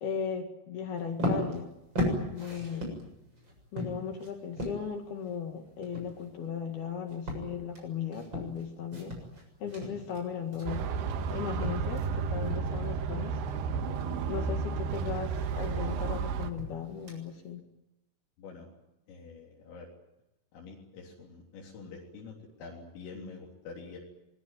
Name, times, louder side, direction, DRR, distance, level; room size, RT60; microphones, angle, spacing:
voice 1, 0.0-1.8 2.3-3.0 3.7-9.2 9.6-10.9 11.3-13.4 14.3-17.6, left 7 dB, 55° left, 5 dB, 3.5 m, -37 dB
sound 1, 1.0-12.1 12.4-12.8 13.2-17.5, left 1 dB, 20° right, 7.6 m, -37 dB
voice 2, 2.5-2.9 9.6-10.0 18.4-18.7 19.1-19.9 20.5-22.3 22.6-24.0, left 4 dB, 80° left, -2 dB, 6.3 m, -47 dB
sound 2, 10.7-16.5, right 5 dB, 65° right, 3.1 m, -32 dB
24.0 x 22.0 x 9.3 m, 0.91 s
omnidirectional pair, 5.8 m